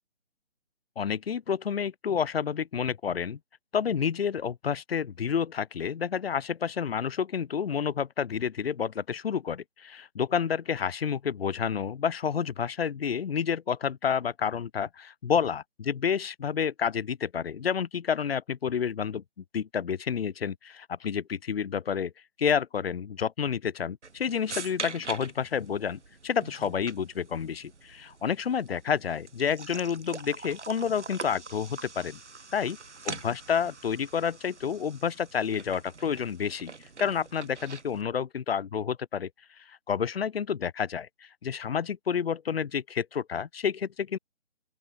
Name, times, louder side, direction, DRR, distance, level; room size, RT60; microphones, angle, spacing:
voice 1, 1.0-3.4 3.7-19.2 19.5-22.1 22.4-32.2 32.5-32.8 33.1-36.7 37.0-39.3 39.7-44.2, left 7 dB, 60° left, 0.5 m, -29 dB
sound 1, 24.0-38.0, right 4 dB, 85° right, 1.0 m, -43 dB
open air
figure-of-eight pair, 150°, 34 cm